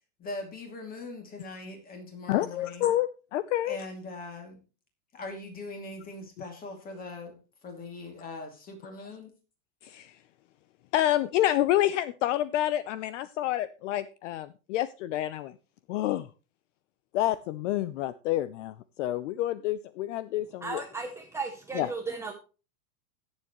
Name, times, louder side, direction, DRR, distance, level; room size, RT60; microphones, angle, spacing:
voice 1, 0.2-2.9 3.6-4.6 5.1-9.3, left 2 dB, 20° left, 4 dB, 2.5 m, -41 dB
voice 2, 2.3-3.8 9.8-10.2 10.9-15.5 15.9-16.3 17.1-20.8 21.7-21.9, left 13 dB, 55° left, 16 dB, 0.6 m, -28 dB
voice 3, 20.6-22.3, right 4 dB, 5° right, 2 dB, 0.6 m, -35 dB
17.5 x 7.2 x 3.0 m, 0.33 s
supercardioid pair, 165°, 45 cm